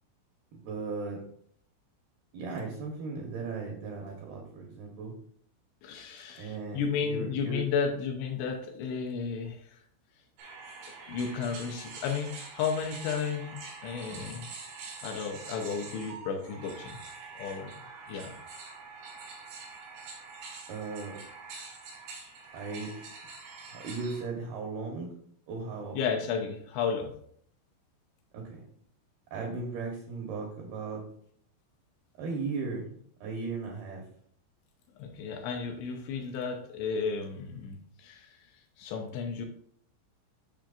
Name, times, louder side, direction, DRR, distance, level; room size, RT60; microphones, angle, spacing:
voice 1, 0.5-1.2 2.3-5.1 6.4-7.6 14.1-14.2 20.7-21.2 22.5-22.9 23.7-25.1 25.5-26.0 28.3-28.6 29.3-31.0 32.2-34.0, right 4 dB, 75° right, 1 dB, 2.3 m, -37 dB
voice 2, 5.8-9.8 11.1-13.6 13.8-14.5 15.0-16.9 17.4-17.7 18.1-18.3 25.9-27.1 35.0-38.5 38.8-39.5, left 6 dB, 80° left, 3 dB, 2.7 m, -33 dB
sound 1, 10.4-24.2, right 4 dB, 90° right, 4.6 m, -45 dB
10.5 x 5.8 x 2.5 m, 0.64 s
omnidirectional pair, 5.9 m